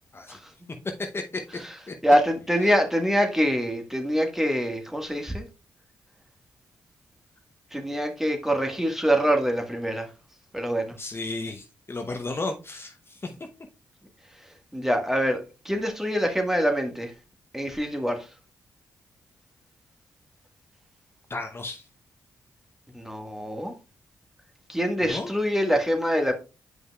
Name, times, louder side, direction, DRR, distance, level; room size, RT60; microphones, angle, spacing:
voice 1, 0.8-1.9 2.6-2.8 11.0-13.3 21.3-21.9 25.0-25.3, left 3 dB, 35° left, 0.8 m, -34 dB
voice 2, 2.0-5.4 7.7-10.1 10.5-10.9 14.7-15.4 15.6-17.1 17.5-18.3 22.9-23.7 24.7-26.3, equal, 5° right, 1.5 m, -24 dB
7.8 x 5.4 x 2.3 m
supercardioid pair, 50°, 7 cm